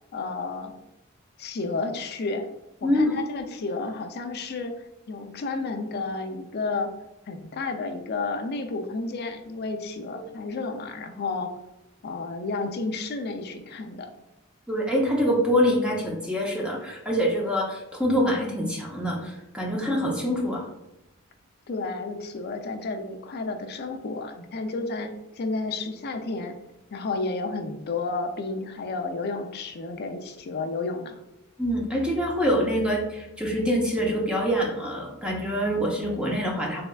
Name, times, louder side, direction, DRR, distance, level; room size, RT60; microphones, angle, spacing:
voice 1, 0.1-0.7 1.4-2.5 2.8-4.7 5.1-6.9 7.3-11.5 12.0-14.1 21.7-26.6 26.9-31.1, left 3 dB, 50° left, 6 dB, 0.4 m, -31 dB
voice 2, 2.8-3.2 14.7-20.6 31.6-36.8, equal, 5° right, -2 dB, 0.6 m, -25 dB
3.4 x 3.2 x 2.3 m, 0.92 s
head